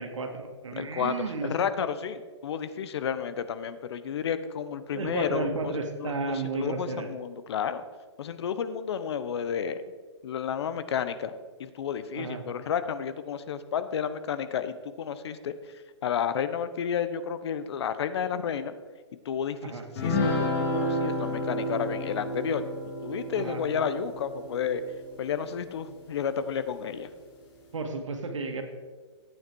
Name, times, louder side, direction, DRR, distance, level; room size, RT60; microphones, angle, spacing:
voice 1, 0.0-1.7 4.9-7.1 12.2-12.4 19.6-19.9 23.4-23.6 27.7-28.6, right 3 dB, 85° right, 5 dB, 2.1 m, -33 dB
voice 2, 0.8-1.1 1.4-5.7 6.0-6.1 6.6-7.8 8.2-9.8 10.2-11.3 11.6-15.5 16.0-18.7 19.2-19.6 20.0-22.6 23.0-24.8 25.2-27.1, left 8 dB, 60° left, 12 dB, 1.0 m, -31 dB
sound 1, 20.0-25.6, left 1 dB, 40° left, 3.5 m, -31 dB
14.5 x 9.2 x 4.6 m, 1.5 s
hypercardioid pair, 145°, 15 cm